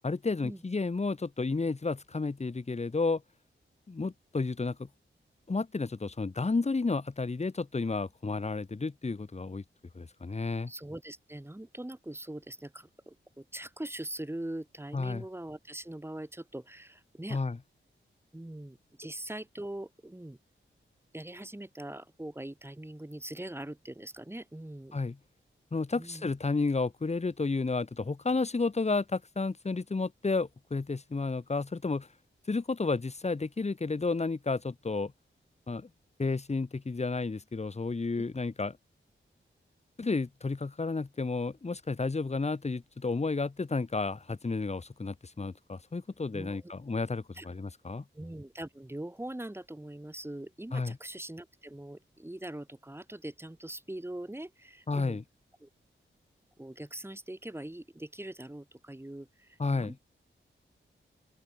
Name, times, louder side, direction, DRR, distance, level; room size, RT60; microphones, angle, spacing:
voice 1, 0.0-3.2 3.9-4.9 5.5-9.6 9.9-10.7 14.9-15.2 17.3-17.6 24.9-25.2 25.7-32.1 32.5-35.1 35.7-35.9 36.2-38.8 40.0-48.0 50.7-51.0 54.9-55.2 59.6-59.9, left 3 dB, 30° left, 1.5 m, -31 dB
voice 2, 10.7-17.4 18.3-20.4 21.1-25.0 26.0-26.3 46.3-46.7 47.3-47.5 48.1-55.2 55.6-55.7 56.6-60.0, right 1 dB, 10° right, 3.0 m, -42 dB
open air
wide cardioid pair, 95°, 21 cm